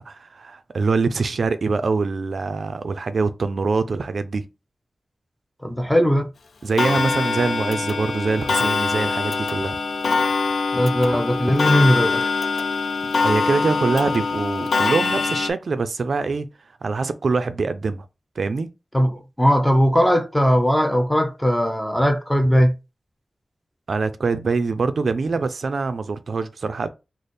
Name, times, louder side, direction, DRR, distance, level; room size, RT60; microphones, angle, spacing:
voice 1, 0.0-4.4 6.6-9.8 13.2-16.5 16.8-18.0 18.4-18.7 23.9-26.9, right 4 dB, 65° right, 0.3 m, -24 dB
voice 2, 5.6-6.3 10.7-12.3 18.9-22.7, equal, 5° left, 0.5 m, -19 dB
Clock, 6.8-15.5, left 4 dB, 85° left, 0.3 m, -23 dB
3.3 x 2.0 x 4.0 m
wide cardioid pair, 125°, 0 cm